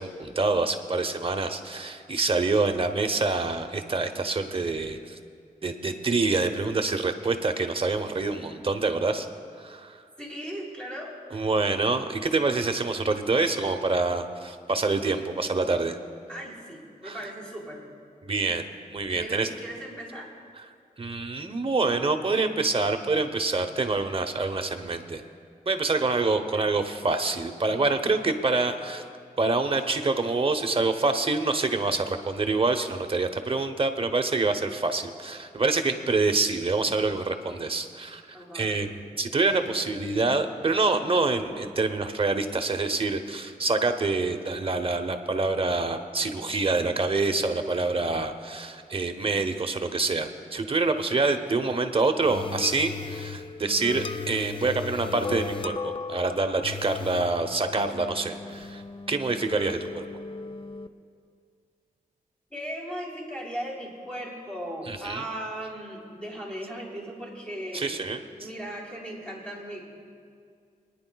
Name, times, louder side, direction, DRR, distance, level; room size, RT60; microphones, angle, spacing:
voice 1, 0.0-5.2 5.6-9.3 9.6-10.0 11.3-16.0 17.0-17.2 18.2-18.6 18.9-19.5 21.0-25.2 25.7-29.0 29.4-58.8 59.1-60.0 64.9-65.2 67.7-68.2, right 3 dB, 40° right, 7 dB, 0.8 m, -26 dB
voice 2, 10.2-11.5 16.3-17.8 19.1-20.3 26.5-26.7 28.4-28.5 38.3-38.9 62.5-68.0 68.4-69.8, right 1 dB, 10° left, -4 dB, 3.3 m, -37 dB
sound 1, 52.2-60.9, left 4 dB, 35° left, 0.4 m, -36 dB
29.5 x 10.0 x 2.3 m, 2.2 s
wide cardioid pair, 85°, 15 cm